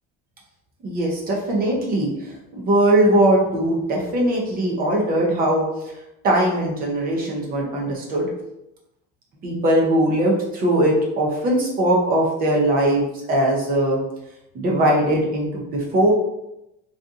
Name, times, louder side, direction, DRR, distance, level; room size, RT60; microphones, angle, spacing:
voice 1, 0.8-5.6 6.2-8.3 9.4-14.0 14.5-16.1, right 1 dB, 25° right, -2 dB, 0.5 m, -20 dB
2.6 x 2.5 x 2.4 m, 0.86 s
cardioid pair, 180°, 33 cm